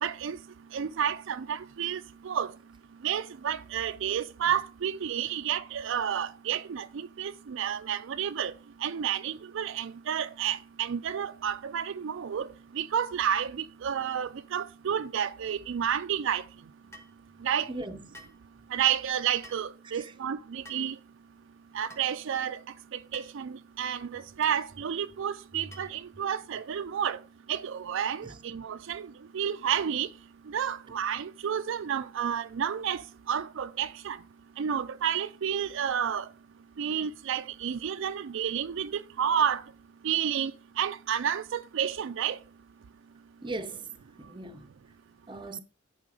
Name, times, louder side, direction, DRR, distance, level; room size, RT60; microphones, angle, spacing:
voice 1, 0.0-0.4 0.7-2.5 3.0-8.5 8.8-12.5 12.7-16.4 17.4-17.7 18.7-21.0 21.7-22.6 22.9-27.2 27.5-30.1 30.5-34.2 34.6-36.3 36.8-39.6 40.0-40.5 40.8-42.4, right 8 dB, 70° right, 0.4 m, -30 dB
sound 1, 16.9-17.2 18.1-18.4 19.4-19.7 20.6-20.9 21.9-22.1 23.1-23.4 24.4-24.6 25.7-26.0, equal, 15° left, 1.3 m, -50 dB
voice 2, 17.7-18.2 43.4-44.7 45.3-45.6, right 2 dB, 25° right, 0.7 m, -38 dB
10.5 x 4.2 x 4.8 m
head